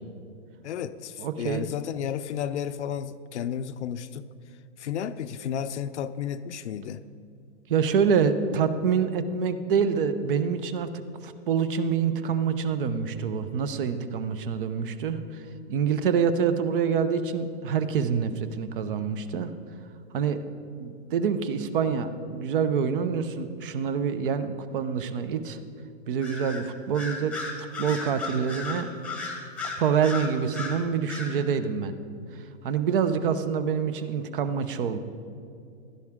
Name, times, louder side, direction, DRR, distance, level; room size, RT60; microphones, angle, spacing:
voice 1, 0.6-4.3 4.8-7.0, left 9 dB, 70° left, 12 dB, 0.6 m, -32 dB
voice 2, 1.2-1.7 7.7-10.9 11.2-15.4 15.7-19.5 20.1-20.4 20.8-25.6 26.1-28.9 29.8-31.9 32.3-35.0, right 6 dB, 50° right, 11 dB, 0.8 m, -26 dB
Bird vocalization bird call bird song, 26.2-26.6 26.9-30.8 31.1-31.3, left 3 dB, 5° left, 1.0 m, -35 dB
15.5 x 12.0 x 3.7 m, 2.5 s
hypercardioid pair, 150°, 35 cm